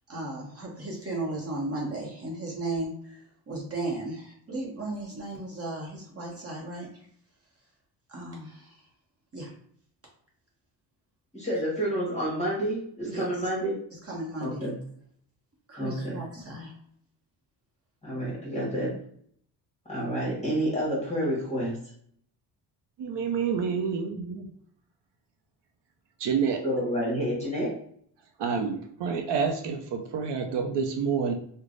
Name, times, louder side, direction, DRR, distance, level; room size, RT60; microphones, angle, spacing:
voice 1, 0.1-6.9 8.1-8.8 9.3-9.5 13.0-13.5 14.0-14.7 15.7-16.7, right 2 dB, 35° right, -2 dB, 0.9 m, -35 dB
voice 2, 11.3-13.8 14.4-14.8 15.8-16.2 18.0-18.9 19.9-21.8 23.5-23.6 26.6-27.7, equal, 15° left, -6 dB, 1.2 m, -29 dB
voice 3, 23.0-24.5 26.2-26.6 28.4-31.3, right 6 dB, 75° right, 3 dB, 0.6 m, -28 dB
3.2 x 2.2 x 3.8 m, 0.63 s
cardioid pair, 125°, 42 cm